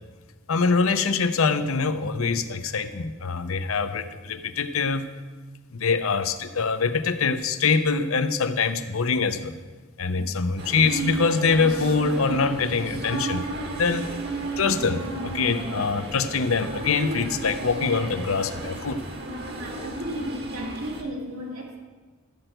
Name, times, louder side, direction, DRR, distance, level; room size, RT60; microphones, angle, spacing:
voice 1, 0.5-5.1 5.7-9.5 10.0-13.4 13.7-14.1 14.6-19.0, left 4 dB, 75° left, 10 dB, 0.7 m, -24 dB
sound 1, 10.6-21.0, right 2 dB, 50° right, 1.3 m, -33 dB
voice 2, 19.6-21.8, equal, 90° right, -2 dB, 2.2 m, -34 dB
13.0 x 4.5 x 7.8 m, 1.4 s
head